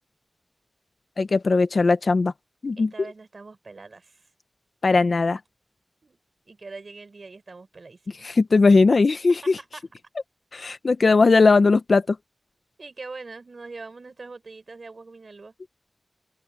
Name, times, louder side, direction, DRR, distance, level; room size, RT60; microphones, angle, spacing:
voice 1, 1.2-2.3 2.6-3.1 4.8-5.4 8.2-9.6 10.5-12.2, left 3 dB, 65° left, 0.7 m, -19 dB
voice 2, 2.8-4.3 6.0-6.2 6.5-8.4 9.4-9.8 12.8-15.5, right 3 dB, 60° right, 6.3 m, -42 dB
open air
wide cardioid pair, 60°, 0 cm